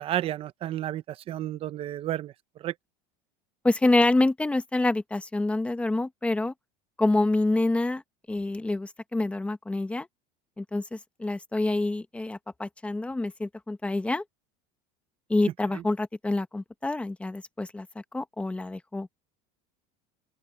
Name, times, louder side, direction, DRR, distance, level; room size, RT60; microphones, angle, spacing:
voice 1, 0.0-2.3 2.6-2.7 15.7-15.8, right 12 dB, 30° right, 0.7 m, -31 dB
voice 2, 3.6-6.5 7.0-8.0 8.3-10.1 10.6-14.2 15.3-17.9 18.1-19.1, left 2 dB, 5° left, 0.9 m, -27 dB
open air
cardioid pair, 170°, 19 cm